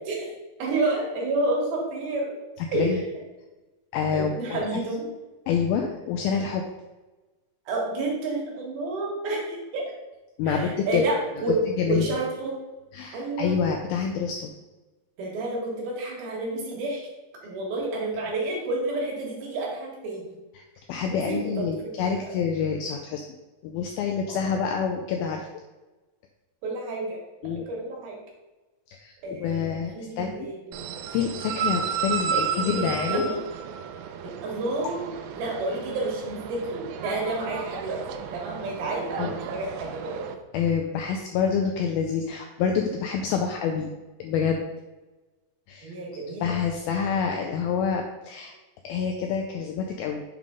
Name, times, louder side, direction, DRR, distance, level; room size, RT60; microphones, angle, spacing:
voice 1, 0.6-2.4 2.7-3.1 4.1-5.1 7.7-9.9 10.5-11.6 11.9-12.6 13.1-13.6 15.2-17.1 17.4-20.3 21.1-21.7 22.0-22.3 24.3-24.6 26.6-28.1 29.2-31.0 32.6-33.4 34.2-40.2 45.8-46.6, right 2 dB, 65° right, -2 dB, 3.3 m, -30 dB
voice 2, 2.6-3.0 3.9-4.8 5.5-6.6 10.4-11.1 11.5-12.1 12.9-14.5 20.6-20.7 20.9-23.2 23.6-25.5 27.4-27.7 28.9-30.5 31.1-33.2 39.2-39.4 40.5-43.9 44.2-44.7 45.7-45.9 46.4-48.5 48.8-50.3, left 6 dB, 85° left, 3 dB, 2.1 m, -27 dB
sound 1, 30.7-40.4, right 7 dB, 90° right, 2.8 m, -33 dB
7.6 x 3.6 x 5.2 m, 1.1 s
omnidirectional pair, 4.8 m